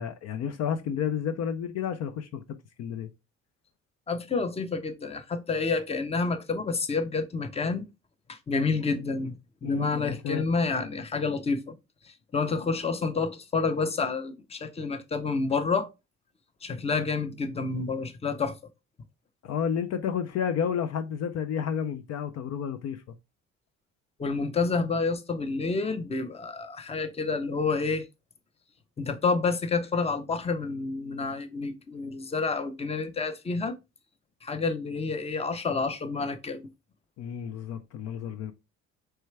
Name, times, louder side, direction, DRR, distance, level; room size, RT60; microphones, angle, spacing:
voice 1, 0.0-3.1 9.6-10.5 19.4-23.0 37.2-38.5, left 8 dB, 60° left, 0.5 m, -31 dB
voice 2, 4.1-7.9 8.3-11.7 12.0-15.9 16.6-18.6 24.2-28.1 29.0-33.7 34.4-36.7, left 4 dB, 20° left, 0.7 m, -29 dB
4.4 x 3.3 x 3.2 m
cardioid pair, 105°, 30 cm